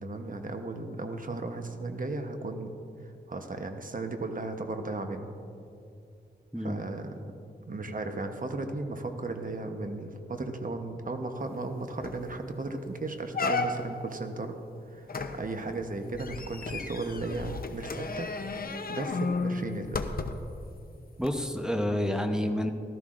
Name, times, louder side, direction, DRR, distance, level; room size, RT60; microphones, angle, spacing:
voice 1, 0.0-2.8 3.3-5.3 6.6-7.1 7.7-14.6 14.9-15.1 15.4-18.3 18.9-20.1, right 2 dB, 45° right, 6 dB, 1.0 m, -35 dB
sound 1, 11.6-11.7 12.0-12.3 12.8-12.9 13.3-14.1 15.1-20.6 21.2-21.3, left 3 dB, 50° left, 0.7 m, -34 dB
voice 2, 21.2-22.7, equal, 5° right, 4 dB, 0.8 m, -29 dB
15.0 x 12.5 x 2.5 m, 2.6 s
wide cardioid pair, 65°, 19 cm